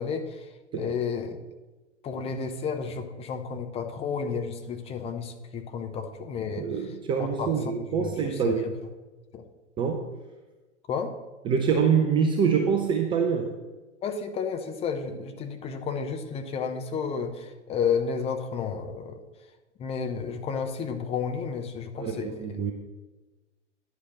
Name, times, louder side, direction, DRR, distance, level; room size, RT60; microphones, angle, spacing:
voice 1, 0.0-1.4 2.0-8.7 9.3-9.4 10.9-11.1 14.0-19.2 19.8-22.6, left 6 dB, 15° left, 6 dB, 0.7 m, -32 dB
voice 2, 6.6-8.7 9.8-10.1 11.4-13.5 22.0-22.7, right 6 dB, 15° right, 5 dB, 0.5 m, -25 dB
10.0 x 5.1 x 6.4 m, 1.2 s
figure-of-eight pair, 100°, 36 cm